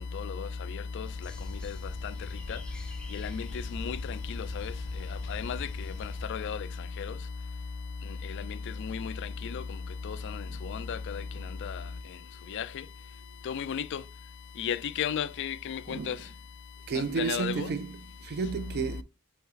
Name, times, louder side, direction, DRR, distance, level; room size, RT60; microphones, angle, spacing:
voice 1, 0.1-0.5 1.0-1.1 1.6-1.7 2.5-2.6 3.1-3.5 3.7-4.0 4.6-4.7 5.3-5.6 6.3-6.6 7.0-7.1 8.9-9.1 9.5-9.6 10.0-10.2 10.7-11.2 11.6-11.7 12.5-12.7 13.5-14.0 14.6-16.2 17.2-17.7, left 7 dB, 50° left, 0.3 m, -33 dB
sound 1, 1.0-6.3, left 1 dB, 5° left, 0.5 m, -44 dB
voice 2, 15.9-16.2 16.9-19.0, right 5 dB, 45° right, 0.4 m, -32 dB
5.5 x 4.0 x 2.3 m
head